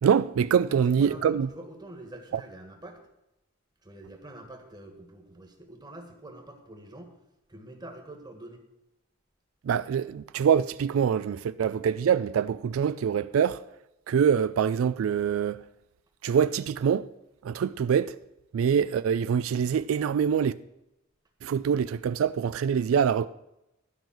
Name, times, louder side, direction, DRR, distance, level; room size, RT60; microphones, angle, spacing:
voice 1, 0.0-1.5 9.6-13.6 14.1-15.6 16.2-17.1 17.4-18.1 18.5-20.5 21.4-23.3, right 7 dB, 85° right, 0.3 m, -24 dB
voice 2, 0.6-3.0 3.8-7.1 7.5-8.6, right 1 dB, 20° right, 1.7 m, -45 dB
12.0 x 5.5 x 7.3 m
head